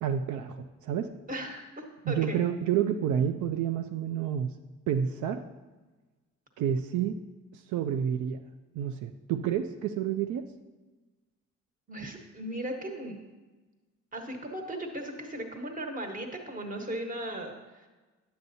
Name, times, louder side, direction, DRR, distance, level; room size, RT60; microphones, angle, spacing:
voice 1, 0.0-1.1 2.1-4.5 4.9-5.4 6.6-7.2 7.5-8.4 8.7-10.5, right 9 dB, 75° right, 7 dB, 0.5 m, -29 dB
voice 2, 1.3-1.7 2.1-2.4 11.9-13.2 14.1-17.9, right 1 dB, 25° right, 3 dB, 1.2 m, -37 dB
9.5 x 7.9 x 2.7 m, 1.2 s
cardioid pair, 90°, 30 cm